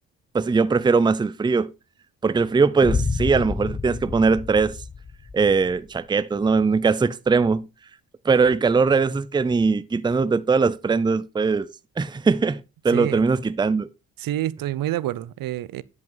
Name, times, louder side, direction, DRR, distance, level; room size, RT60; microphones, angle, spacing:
voice 1, 0.3-1.7 2.2-4.8 5.3-7.7 8.2-11.7 12.0-13.9, right 4 dB, 15° right, 0.5 m, -20 dB
Boom, 2.8-5.8, left 4 dB, 30° left, 1.3 m, -29 dB
voice 2, 12.9-13.2 14.2-15.8, right 13 dB, 70° right, 0.6 m, -28 dB
10.5 x 5.4 x 3.9 m
cardioid pair, 80°, 35 cm